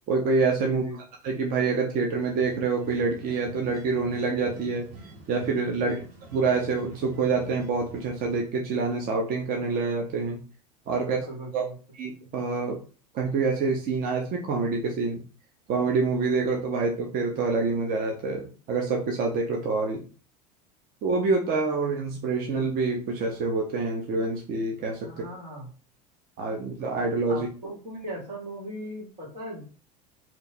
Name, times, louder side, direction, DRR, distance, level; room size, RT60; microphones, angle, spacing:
voice 1, 0.1-0.8 1.2-4.9 5.3-6.0 6.3-10.4 10.9-11.2 11.5-11.7 12.0-12.8 13.1-15.2 15.7-20.0 21.0-25.3 26.4-27.5, right 4 dB, 45° right, 1 dB, 0.7 m, -26 dB
voice 2, 0.6-1.0 5.7-6.0 10.9-11.8 25.0-25.7 27.3-29.6, right 1 dB, 85° right, -4 dB, 1.8 m, -38 dB
sound 1, 2.1-8.4, right 1 dB, 65° right, 1.5 m, -47 dB
2.9 x 2.1 x 4.1 m, 0.38 s
hypercardioid pair, 85°, 21 cm